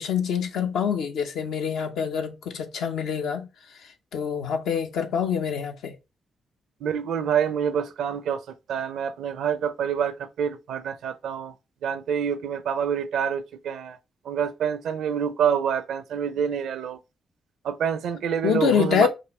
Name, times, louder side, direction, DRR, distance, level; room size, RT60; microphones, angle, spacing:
voice 1, 0.0-3.5 3.8-5.9 18.4-19.1, left 7 dB, 80° left, 0.9 m, -25 dB
voice 2, 6.8-11.5 11.8-14.0 14.2-17.0 17.6-19.1, right 8 dB, 75° right, 0.6 m, -27 dB
5.6 x 2.6 x 3.2 m
hypercardioid pair, 45°, 0 cm